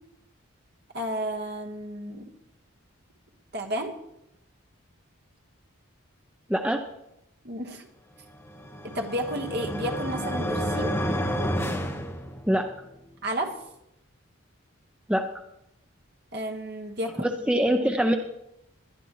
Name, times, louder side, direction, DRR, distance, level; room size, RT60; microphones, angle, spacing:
voice 1, 0.9-2.3 3.5-4.0 7.4-7.9 8.8-10.9 13.2-13.6 16.3-17.3, right 1 dB, 50° right, 2 dB, 1.5 m, -32 dB
voice 2, 6.5-6.8 12.5-12.7 15.1-15.3 17.2-18.2, equal, 5° right, 4 dB, 0.5 m, -23 dB
sound 1, 8.4-12.8, equal, 10° left, 1.0 m, -30 dB
20.5 x 11.0 x 3.1 m, 0.83 s
head